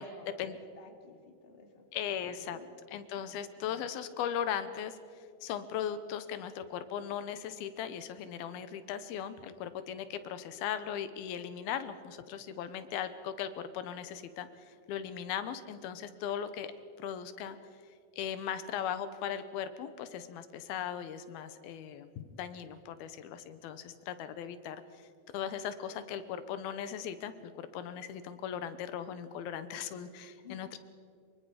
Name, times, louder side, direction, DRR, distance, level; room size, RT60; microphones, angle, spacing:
voice 1, 0.0-1.9 2.2-2.7 3.2-3.4 30.4-30.8, left 5 dB, 20° left, 3 dB, 1.9 m, -54 dB
voice 2, 1.9-2.6 2.9-5.0 5.4-16.7 17.0-17.6 18.1-25.0 25.3-30.8, left 9 dB, 85° left, 12 dB, 2.9 m, -38 dB
26.0 x 23.5 x 5.0 m, 2.3 s
omnidirectional pair, 4.3 m